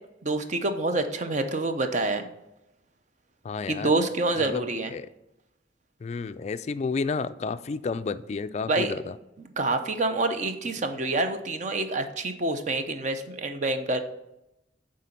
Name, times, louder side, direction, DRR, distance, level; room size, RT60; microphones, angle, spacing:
voice 1, 0.2-2.2 3.7-4.9 8.7-8.9 9.6-14.0, right 2 dB, 40° right, 7 dB, 0.6 m, -27 dB
voice 2, 3.4-3.9 4.3-5.1 6.0-9.2, left 4 dB, 35° left, 13 dB, 0.3 m, -31 dB
9.1 x 3.8 x 5.8 m, 0.88 s
head